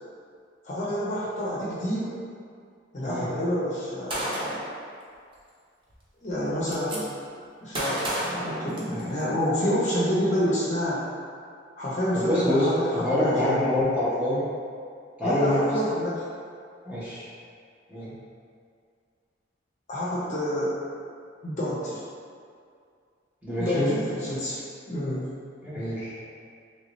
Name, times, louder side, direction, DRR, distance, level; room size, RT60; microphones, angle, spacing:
voice 1, 0.6-2.1 2.9-4.5 6.2-7.1 7.6-11.0 11.8-13.6 15.2-16.2 19.9-20.8 21.4-22.0 23.6-24.6 24.9-25.3, equal, 40° left, -7 dB, 0.6 m, -28 dB
Gunshot gunfire, 4.1-4.7 5.9-6.0 6.3-7.0 7.7-9.2, right 1 dB, 25° right, 0.5 m, -31 dB
voice 2, 12.1-12.7 12.9-14.4 15.2-15.7 16.8-17.3 17.9-18.1 23.4-24.0 25.6-26.2, left 1 dB, 10° right, -11 dB, 0.9 m, -25 dB
3.2 x 2.8 x 3.0 m, 2.2 s
head